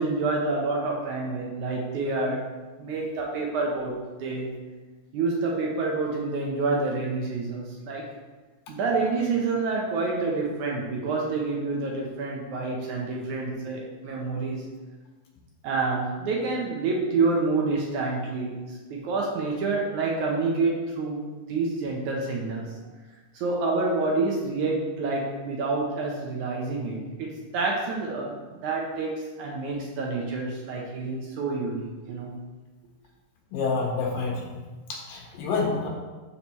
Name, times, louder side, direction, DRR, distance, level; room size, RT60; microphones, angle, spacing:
voice 1, 0.0-2.5 2.8-4.5 5.1-8.0 8.7-14.6 15.6-18.6 18.9-22.7 23.3-32.3, right 3 dB, 70° right, -1 dB, 2.0 m, -28 dB
voice 2, 33.5-34.6 34.9-35.9, left 4 dB, 75° left, -1 dB, 3.0 m, -28 dB
12.0 x 4.8 x 3.1 m, 1.3 s
omnidirectional pair, 4.0 m